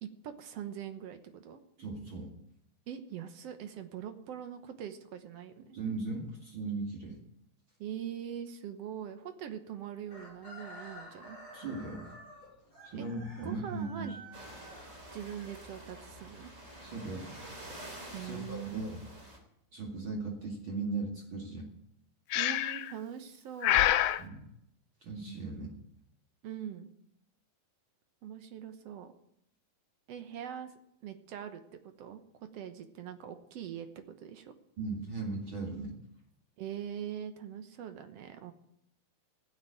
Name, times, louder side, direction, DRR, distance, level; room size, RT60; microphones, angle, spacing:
voice 1, 0.0-1.6 2.9-5.8 7.8-11.4 12.9-13.1 13.4-14.2 15.1-16.5 18.1-18.9 22.3-23.9 26.4-26.9 28.2-29.1 30.1-30.7 31.0-33.9 34.2-34.5 36.6-38.5, right 9 dB, 65° right, 8 dB, 1.6 m, -42 dB
voice 2, 1.8-2.3 5.7-7.2 11.5-12.1 12.8-14.2 16.8-17.3 18.2-19.0 19.7-21.7 24.2-24.4 25.0-25.7 34.8-35.9, right 3 dB, 40° right, 0 dB, 2.5 m, -38 dB
Chicken rooster, 10.1-16.0, equal, 20° left, 7.2 m, -51 dB
sound 1, 14.3-19.4, right 1 dB, 20° right, 3.5 m, -48 dB
Breathing, 22.3-22.9 23.6-24.2, left 13 dB, 85° left, 1.7 m, -26 dB
16.0 x 7.3 x 9.2 m, 0.77 s
omnidirectional pair, 4.1 m